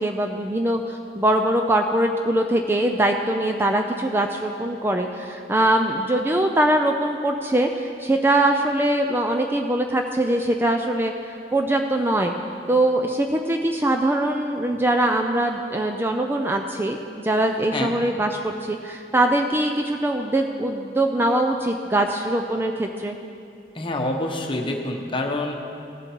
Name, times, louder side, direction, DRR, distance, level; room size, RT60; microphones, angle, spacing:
voice 1, 0.0-12.3 12.7-17.0 17.2-23.2, right 1 dB, 15° right, 3 dB, 0.4 m, -22 dB
voice 2, 23.7-25.5, left 1 dB, 30° left, 2 dB, 1.0 m, -26 dB
16.5 x 7.4 x 4.6 m, 2.5 s
head